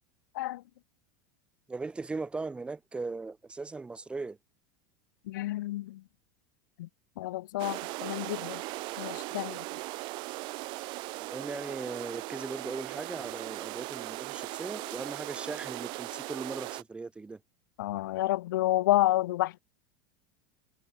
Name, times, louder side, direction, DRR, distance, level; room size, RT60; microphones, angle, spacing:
voice 1, 1.7-4.4 11.2-17.4, right 3 dB, 10° right, 2.3 m, -38 dB
voice 2, 5.3-6.0 6.8-6.9 7.2-8.6 9.0-9.6 17.8-19.6, left 16 dB, 90° left, 1.2 m, -29 dB
sound 1, 7.6-16.8, right 23 dB, 50° right, 3.2 m, -38 dB
supercardioid pair, 145°, 10 cm